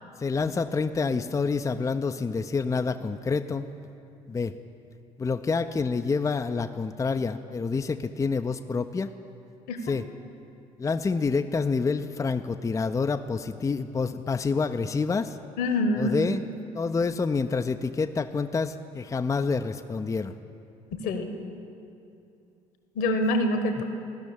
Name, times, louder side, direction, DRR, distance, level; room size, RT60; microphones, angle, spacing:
voice 1, 0.2-3.7 4.3-4.5 5.2-9.1 9.8-10.0 10.8-15.4 16.0-16.4 16.7-20.3, left 4 dB, 20° left, 7 dB, 0.5 m, -27 dB
voice 2, 15.6-16.1 20.9-21.4 22.9-23.8, left 1 dB, 65° left, 7 dB, 1.3 m, -25 dB
15.0 x 6.3 x 9.8 m, 2.6 s
figure-of-eight pair, 55°, 17 cm